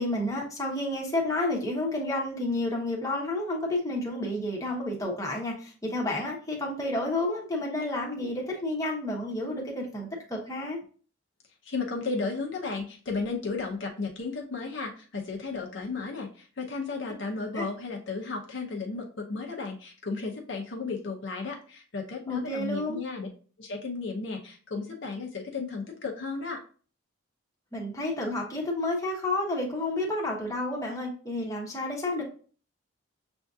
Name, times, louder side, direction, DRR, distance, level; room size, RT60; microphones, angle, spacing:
voice 1, 0.0-10.8 17.5-17.7 22.3-23.0 27.7-32.2, left 1 dB, 15° left, -2 dB, 0.9 m, -30 dB
voice 2, 11.6-23.3 23.6-26.6, left 4 dB, 60° left, 1 dB, 0.7 m, -34 dB
6.8 x 2.6 x 2.3 m, 0.40 s
head